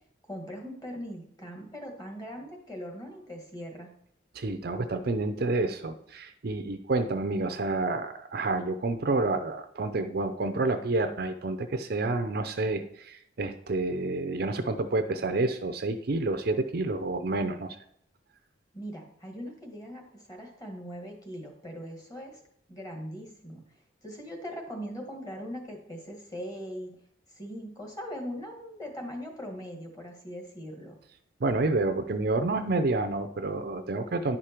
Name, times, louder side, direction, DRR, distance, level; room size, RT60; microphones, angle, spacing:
voice 1, 0.3-3.9 18.7-22.4 22.7-23.6 24.0-26.9 27.3-30.9, equal, 20° left, 1 dB, 1.6 m, -40 dB
voice 2, 4.3-17.8 31.4-34.4, right 2 dB, 50° right, 8 dB, 0.5 m, -29 dB
10.5 x 4.9 x 4.4 m, 0.70 s
head